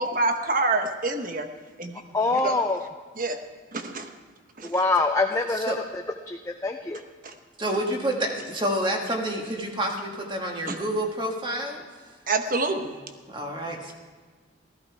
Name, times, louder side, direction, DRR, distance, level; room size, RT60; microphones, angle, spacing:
voice 1, 0.0-1.5 1.8-2.0 2.3-2.6 3.2-3.4 3.7-4.1 4.6-4.8 7.2-7.3 10.7-10.8 12.3-13.0, right 3 dB, 45° right, 7 dB, 1.0 m, -27 dB
voice 2, 2.1-2.8 4.6-5.7 6.3-7.0, left 3 dB, 15° left, 4 dB, 0.4 m, -24 dB
voice 3, 7.6-11.8 13.3-13.9, right 1 dB, 25° right, 1 dB, 1.6 m, -28 dB
15.5 x 14.0 x 4.7 m, 1.5 s
head